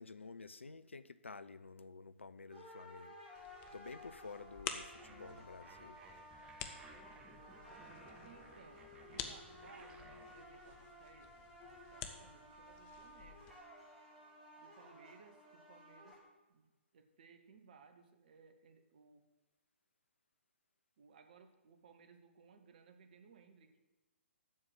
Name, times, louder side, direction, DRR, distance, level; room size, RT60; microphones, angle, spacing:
voice 1, 0.0-3.2 3.7-6.0, left 4 dB, 75° left, 14 dB, 0.5 m, -51 dB
sound 1, 2.5-16.1, left 1 dB, 5° left, 3.5 m, -56 dB
sound 2, 3.3-13.5, left 8 dB, 25° left, 0.6 m, -51 dB
sound 3, 4.9-10.4, right 3 dB, 15° right, 0.9 m, -59 dB
voice 2, 8.2-13.5 14.6-16.2 16.5-19.2 21.0-23.8, right 5 dB, 45° right, 8 dB, 1.0 m, -62 dB
7.6 x 5.9 x 7.8 m, 1.1 s
figure-of-eight pair, 125°, 7 cm